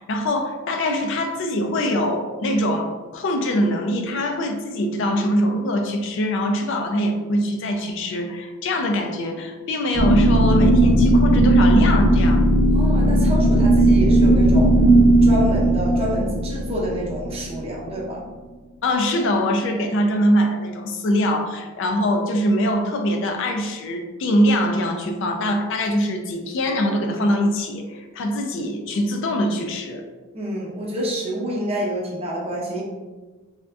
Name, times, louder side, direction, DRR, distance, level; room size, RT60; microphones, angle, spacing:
voice 1, 0.0-12.4 18.8-30.0, equal, 60° left, 4 dB, 0.4 m, -23 dB
sound 1, 9.9-17.9, right 1 dB, 30° left, 0.7 m, -16 dB
voice 2, 12.7-14.7 15.2-18.3 30.3-32.8, equal, 30° right, -3 dB, 0.6 m, -28 dB
3.4 x 2.5 x 2.3 m, 1.3 s
head